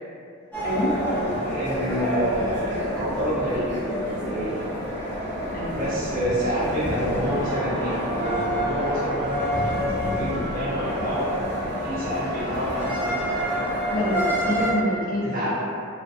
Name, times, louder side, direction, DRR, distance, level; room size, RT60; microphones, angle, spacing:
sound 1, 0.5-14.7, equal, 10° left, 0.8 m, -27 dB
voice 1, 0.6-1.0 5.5-5.8 13.9-15.3, equal, 40° left, -5 dB, 0.4 m, -26 dB
voice 2, 1.5-3.7 4.0-4.5 5.7-11.4 11.8-13.7 15.2-15.6, equal, 45° right, -11 dB, 0.9 m, -28 dB
2.4 x 2.2 x 2.4 m, 2.4 s
head